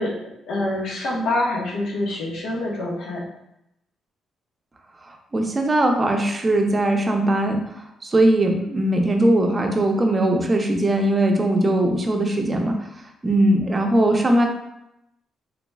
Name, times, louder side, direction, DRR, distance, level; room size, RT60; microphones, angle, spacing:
voice 1, 0.0-3.2, left 1 dB, 80° left, -4 dB, 1.1 m, -26 dB
voice 2, 5.3-7.6 8.0-12.8 13.2-14.4, right 1 dB, 30° right, 3 dB, 0.6 m, -20 dB
3.9 x 3.0 x 2.3 m, 0.84 s
cardioid pair, 90°, 0 cm